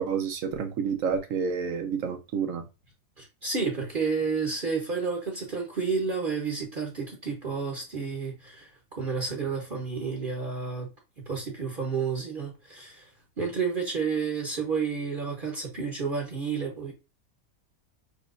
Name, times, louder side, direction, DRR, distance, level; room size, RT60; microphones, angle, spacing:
voice 1, 0.0-2.6, right 6 dB, 65° right, 1.2 m, -29 dB
voice 2, 3.2-10.9 11.3-13.1 13.4-16.9, right 5 dB, 40° right, 1.0 m, -30 dB
6.4 x 3.0 x 2.5 m
omnidirectional pair, 1.5 m